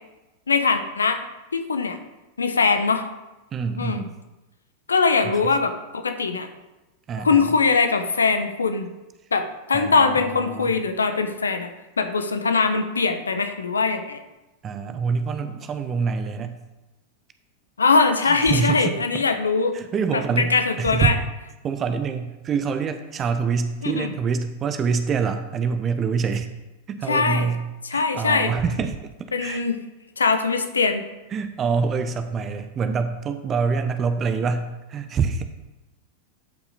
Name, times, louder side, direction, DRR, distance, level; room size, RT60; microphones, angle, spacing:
voice 1, 0.5-1.2 1.5-2.0 2.4-3.1 3.8-4.0 4.9-6.5 7.2-8.9 9.3-11.7 12.0-14.2 17.8-19.8 20.1-21.1 23.8-24.1 27.1-27.5 27.8-28.5 29.3-29.8 30.2-31.0, left 4 dB, 75° left, 8 dB, 0.9 m, -21 dB
voice 2, 3.5-4.1 5.2-5.3 7.1-7.5 9.7-10.7 14.6-16.6 18.2-19.2 19.7-21.1 21.6-26.5 26.9-27.6 27.9-29.6 31.3-35.4, right 5 dB, 25° right, 9 dB, 0.8 m, -26 dB
12.0 x 5.8 x 4.0 m, 1.1 s
figure-of-eight pair, 90°, 0 cm